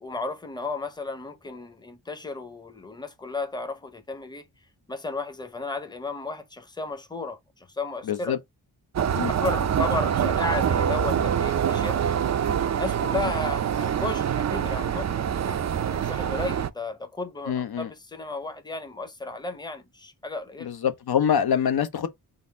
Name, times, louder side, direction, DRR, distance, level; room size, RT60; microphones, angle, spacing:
voice 1, 0.0-4.5 4.9-8.4 9.4-12.0 12.7-15.6 15.9-20.7, left 3 dB, 10° left, 0.8 m, -34 dB
voice 2, 8.1-8.4 9.1-9.3 17.5-17.9 20.6-22.1, left 8 dB, 65° left, 0.8 m, -25 dB
sound 1, 9.0-16.7, right 8 dB, 45° right, 0.5 m, -25 dB
3.9 x 2.6 x 4.0 m
wide cardioid pair, 95°, 40 cm